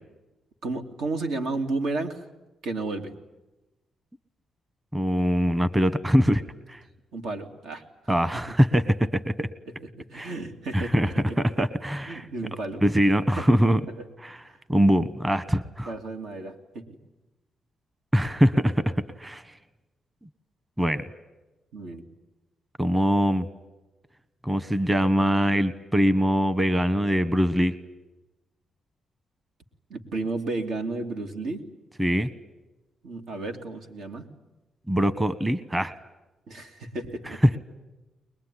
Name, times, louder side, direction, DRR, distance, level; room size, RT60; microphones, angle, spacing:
voice 1, 0.6-2.2 2.6-3.1 7.1-7.8 8.3-8.4 10.0-11.4 12.1-12.8 13.4-13.5 14.5-14.6 15.8-16.9 21.7-22.0 29.9-31.7 33.0-34.2 36.5-37.4, right 3 dB, 80° right, 5 dB, 2.9 m, -32 dB
voice 2, 4.9-6.4 6.7-6.8 8.1-9.5 10.1-10.3 10.7-12.3 12.8-13.8 14.2-14.4 14.7-15.9 18.1-19.4 20.8-21.0 22.8-23.5 24.4-27.7 32.0-32.3 34.9-35.9 37.4-37.6, equal, 15° right, 15 dB, 1.1 m, -22 dB
23.0 x 21.0 x 10.0 m, 1.0 s
cardioid pair, 105°, 0 cm